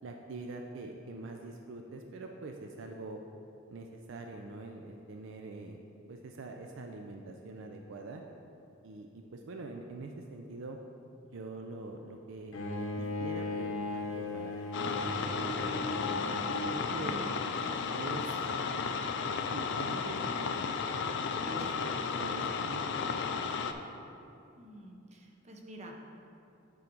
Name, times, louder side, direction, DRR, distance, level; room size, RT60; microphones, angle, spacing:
voice 1, 0.0-3.2 3.7-5.8 6.1-8.2 8.8-10.8 11.3-12.5 13.0-17.2 17.8-18.2 19.5-20.2 21.5-21.9 22.2-22.8, right 3 dB, 65° right, 3 dB, 0.4 m, -44 dB
Bowed string instrument, 12.5-17.6, left 2 dB, 85° left, 0.8 m, -37 dB
sound 1, 14.7-23.7, left 5 dB, 60° left, 0.4 m, -34 dB
voice 2, 17.9-18.3 21.6-21.7 24.5-26.0, right 1 dB, 35° right, 2 dB, 0.7 m, -50 dB
8.7 x 3.9 x 4.5 m, 2.6 s
head